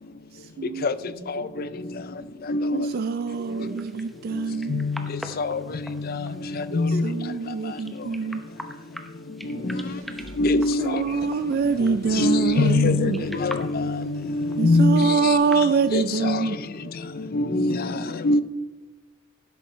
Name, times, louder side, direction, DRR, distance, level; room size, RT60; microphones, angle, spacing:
voice 1, 0.3-0.9 2.7-4.8 7.0-8.4 10.6-13.2 14.6-16.6, right 4 dB, 45° right, 0.3 m, -25 dB
voice 2, 0.9-1.9 3.4-3.9 6.0-6.8 7.1-7.3 9.2-10.0 13.1-13.5 15.5-15.8 17.5-18.1, right 1 dB, 85° right, 2.8 m, -42 dB
voice 3, 2.5-2.9 4.7-5.0 5.4-5.6 6.1-6.2 6.7-7.1 10.4-11.0 12.2-15.1 15.9-16.4 17.3-17.9 18.2-18.4, left 2 dB, 45° left, 0.5 m, -22 dB
sound 1, 3.3-16.2, equal, ahead, 0.7 m, -44 dB
Engine / Mechanisms, 9.4-15.4, right 1 dB, 70° right, 1.1 m, -47 dB
12.0 x 10.5 x 3.2 m
head